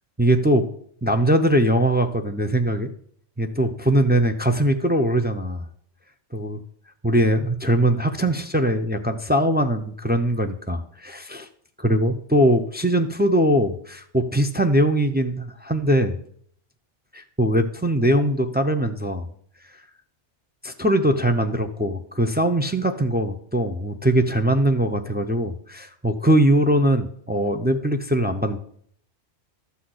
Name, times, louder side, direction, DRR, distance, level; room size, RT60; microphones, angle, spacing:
voice 1, 0.2-0.7 1.0-2.9 3.4-5.6 6.3-6.6 7.0-11.5 11.8-16.2 17.1-19.3 20.6-28.6, right 1 dB, 15° right, 6 dB, 0.3 m, -21 dB
12.5 x 4.2 x 7.8 m, 0.63 s
omnidirectional pair, 1.2 m